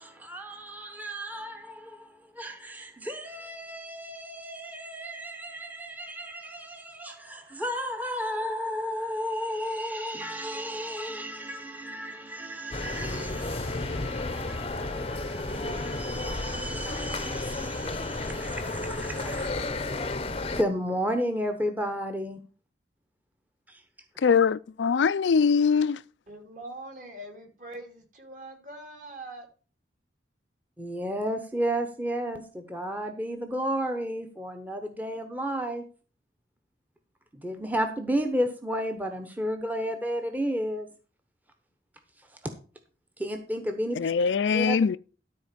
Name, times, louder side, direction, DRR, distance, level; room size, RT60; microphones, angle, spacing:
voice 1, 0.0-19.5 20.6-22.4 30.8-35.8 37.3-40.9 43.2-44.1 44.5-44.8, equal, 10° right, 1.0 m, -33 dB
sound 1, 12.7-20.6, left 2 dB, 30° left, 0.7 m, -32 dB
voice 2, 24.2-26.0 44.0-45.0, left 6 dB, 75° left, 0.4 m, -22 dB
voice 3, 26.3-29.5, right 1 dB, 45° right, 2.7 m, -43 dB
13.0 x 4.4 x 6.8 m
head